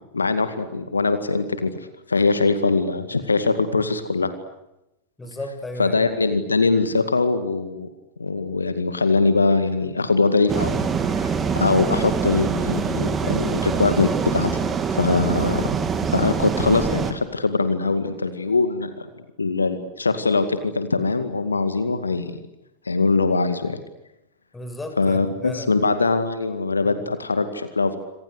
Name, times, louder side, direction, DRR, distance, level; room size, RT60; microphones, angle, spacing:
voice 1, 0.1-1.7 2.1-4.3 5.8-7.9 8.2-14.5 14.9-15.7 16.1-19.1 19.4-22.4 22.9-23.8 25.0-28.0, left 3 dB, 75° left, 10 dB, 2.1 m, -22 dB
voice 2, 5.2-6.0 24.5-25.7, left 1 dB, 10° left, 6 dB, 6.9 m, -34 dB
sound 1, 10.5-17.1, right 6 dB, 20° right, 3.4 m, -24 dB
27.0 x 26.5 x 8.1 m, 0.90 s
figure-of-eight pair, 90°, 0 cm